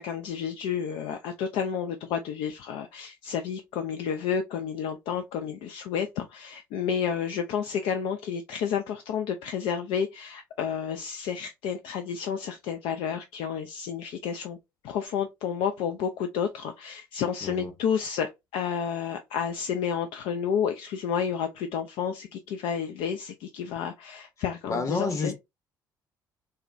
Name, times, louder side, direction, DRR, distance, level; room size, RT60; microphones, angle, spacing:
voice 1, 0.0-14.6 14.8-25.3, left 7 dB, 55° left, 0.4 m, -31 dB
voice 2, 17.4-17.7 24.7-25.4, left 3 dB, 30° left, 0.9 m, -30 dB
3.4 x 2.2 x 2.5 m
figure-of-eight pair, 50°, 11 cm